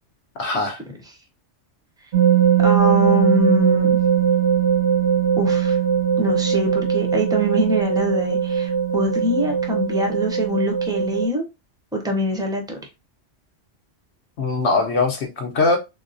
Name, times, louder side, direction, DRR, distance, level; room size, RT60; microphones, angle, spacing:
voice 1, 0.4-0.8 14.4-15.8, left 3 dB, 65° left, 0.9 m, -21 dB
sound 1, 2.1-11.3, right 8 dB, 65° right, 0.7 m, -20 dB
voice 2, 2.6-4.0 5.4-5.8 6.2-11.4 11.9-12.8, equal, 5° right, 0.4 m, -23 dB
3.8 x 2.1 x 2.5 m
omnidirectional pair, 1.3 m